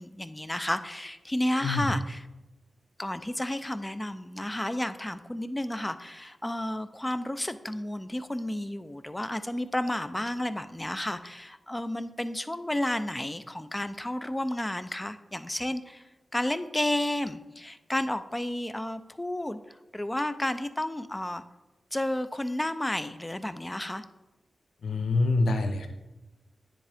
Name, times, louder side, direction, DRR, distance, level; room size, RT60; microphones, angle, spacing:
voice 1, 0.0-2.2 3.0-21.4 21.9-24.0, left 1 dB, 15° left, 11 dB, 0.4 m, -32 dB
voice 2, 1.6-1.9 24.8-25.9, left 3 dB, 85° left, 6 dB, 0.6 m, -26 dB
9.8 x 3.7 x 3.4 m, 1.0 s
cardioid pair, 70°, 0 cm